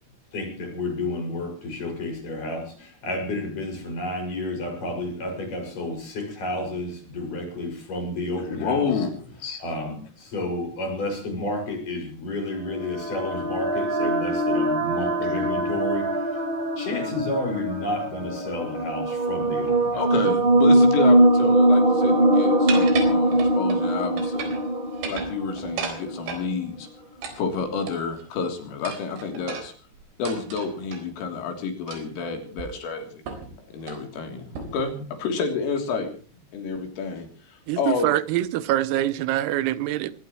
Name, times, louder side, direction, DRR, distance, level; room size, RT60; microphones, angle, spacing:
voice 1, 0.3-8.9 9.6-16.2 16.8-20.1, left 1 dB, 40° left, 7.6 m, -31 dB
voice 2, 8.5-9.6 19.9-24.5 25.1-26.9 27.4-29.7 30.2-33.2 33.7-36.1 36.5-38.1, left 5 dB, 70° left, 5.8 m, -29 dB
sound 1, 12.6-26.3, right 1 dB, 45° right, 0.7 m, -22 dB
sound 2, 22.7-23.8 24.2-24.7 24.9-26.5 27.2-28.2 28.8-31.0 31.9-32.2 32.6-32.7 33.3-33.5 33.8-34.0 34.5-34.9, right 6 dB, 65° right, 6.2 m, -35 dB
voice 3, 37.7-40.2, right 14 dB, 85° right, 3.7 m, -24 dB
23.5 x 19.5 x 3.1 m
omnidirectional pair, 5.9 m